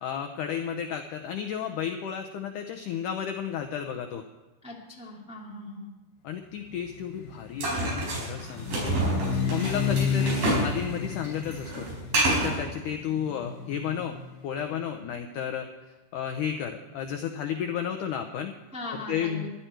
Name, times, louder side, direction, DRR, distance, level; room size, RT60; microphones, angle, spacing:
voice 1, 0.0-4.2 6.2-9.0 9.5-11.9 12.2-14.2 14.4-15.7 16.1-18.5 18.9-19.5, left 8 dB, 85° left, 6 dB, 1.8 m, -32 dB
voice 2, 4.6-5.9 18.7-19.5, left 2 dB, 5° right, -3 dB, 1.3 m, -39 dB
sound 1, 6.7-14.7, left 6 dB, 65° left, 3.2 m, -32 dB
sound 2, 7.6-10.7 11.0-12.6, right 2 dB, 65° right, 6.6 m, -27 dB
16.0 x 11.5 x 4.5 m, 1.2 s
omnidirectional pair, 4.6 m